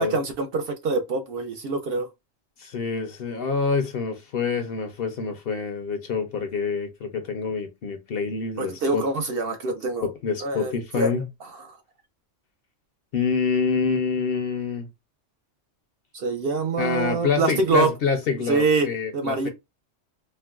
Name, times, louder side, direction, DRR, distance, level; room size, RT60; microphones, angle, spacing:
voice 1, 0.0-2.1 8.6-10.1 10.4-11.1 11.4-11.8 16.1-17.9 18.5-18.9 19.1-19.5, right 3 dB, 60° right, 0.7 m, -25 dB
voice 2, 2.6-9.0 10.0-11.3 13.1-14.9 16.8-19.5, left 5 dB, 60° left, 0.7 m, -26 dB
4.4 x 2.1 x 2.3 m
omnidirectional pair, 1.3 m